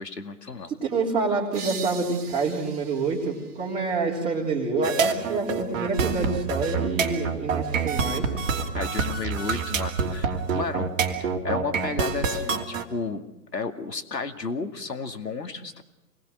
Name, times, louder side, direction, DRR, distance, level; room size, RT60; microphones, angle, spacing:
voice 1, 0.0-0.7 8.7-10.9 11.2-13.2 13.5-15.8, left 4 dB, 85° left, 6 dB, 2.4 m, -32 dB
voice 2, 0.7-8.3, right 4 dB, 15° right, -5 dB, 3.3 m, -27 dB
sound 1, 1.5-5.0, right 5 dB, 65° right, 2.5 m, -42 dB
sound 2, 4.8-12.8, right 5 dB, 50° right, 2.9 m, -27 dB
28.0 x 20.0 x 6.5 m, 0.93 s
figure-of-eight pair, 135°, 49 cm